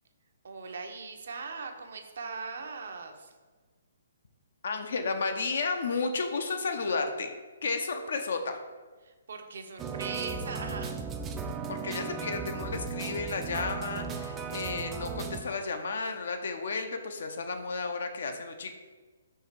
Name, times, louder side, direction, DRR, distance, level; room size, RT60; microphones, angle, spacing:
voice 1, 0.4-3.3 9.0-10.9, right 4 dB, 65° right, 5 dB, 0.6 m, -40 dB
voice 2, 4.6-7.3 7.6-8.6 11.7-18.7, left 4 dB, 65° left, 6 dB, 0.5 m, -32 dB
sound 1, 9.8-15.4, right 5 dB, 15° right, 0.3 m, -36 dB
4.6 x 2.5 x 4.5 m, 1.4 s
figure-of-eight pair, 135°, 0 cm